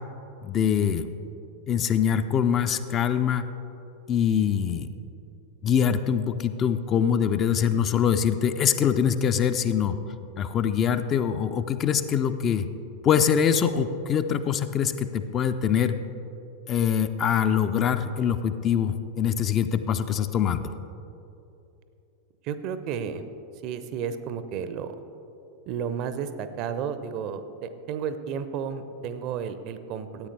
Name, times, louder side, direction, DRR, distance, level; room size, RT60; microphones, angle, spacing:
voice 1, 0.4-1.1 1.7-3.5 4.1-4.9 5.6-10.0 10.4-12.7 13.0-15.9 16.7-20.7, left 8 dB, 30° left, 10 dB, 0.4 m, -24 dB
voice 2, 22.4-23.2 23.6-25.0 25.7-30.3, right 7 dB, 40° right, 11 dB, 0.5 m, -32 dB
13.5 x 8.7 x 3.3 m, 2.9 s
figure-of-eight pair, 90°, 0 cm